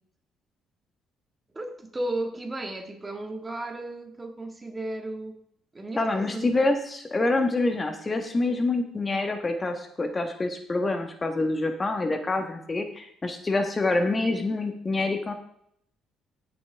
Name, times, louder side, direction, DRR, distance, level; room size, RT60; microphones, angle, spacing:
voice 1, 1.5-5.4 5.7-6.5, right 1 dB, 20° right, 4 dB, 1.9 m, -34 dB
voice 2, 6.0-15.3, left 2 dB, 25° left, 5 dB, 1.4 m, -26 dB
16.0 x 7.0 x 3.5 m, 0.68 s
cardioid pair, 90°, 0 cm